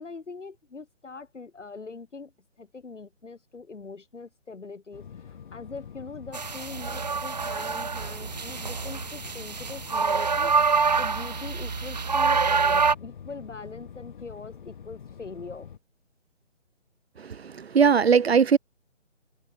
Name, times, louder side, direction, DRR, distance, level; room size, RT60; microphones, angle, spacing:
voice 1, 0.0-2.3 2.6-10.5 11.0-15.7, left 4 dB, 70° left, 6.9 m, -42 dB
sound 1, 4.9-15.8, left 7 dB, 40° left, 3.5 m, -45 dB
sound 2, 6.3-12.9, right 5 dB, 35° right, 0.5 m, -26 dB
voice 2, 17.2-18.6, right 6 dB, 55° right, 0.9 m, -20 dB
figure-of-eight pair, 160°, 37 cm